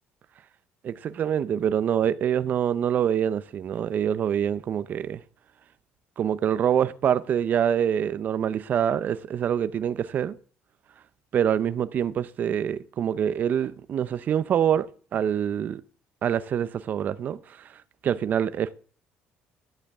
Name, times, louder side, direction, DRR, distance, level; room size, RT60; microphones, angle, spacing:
voice 1, 0.8-5.2 6.2-10.4 11.3-15.8 16.2-17.4 18.0-18.7, right 9 dB, 45° right, 0.6 m, -25 dB
11.5 x 7.7 x 3.5 m
cardioid pair, 115°, 4 cm